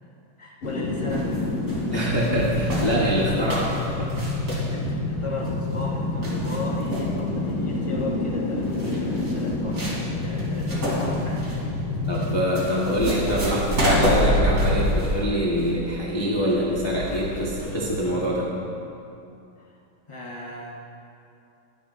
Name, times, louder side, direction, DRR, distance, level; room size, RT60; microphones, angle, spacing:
voice 1, 0.4-1.4 4.7-11.5 19.6-19.7 20.1-20.7, left 3 dB, 55° left, -2 dB, 0.3 m, -35 dB
sound 1, 0.6-13.7 14.0-14.1, left 2 dB, 90° left, 2.3 m, -28 dB
sound 2, 1.1-17.9, equal, 45° right, 3.3 m, -28 dB
voice 2, 1.9-4.2 12.1-18.5, equal, 15° left, -6 dB, 1.0 m, -25 dB
23.5 x 10.5 x 2.6 m, 2.7 s
omnidirectional pair, 2.2 m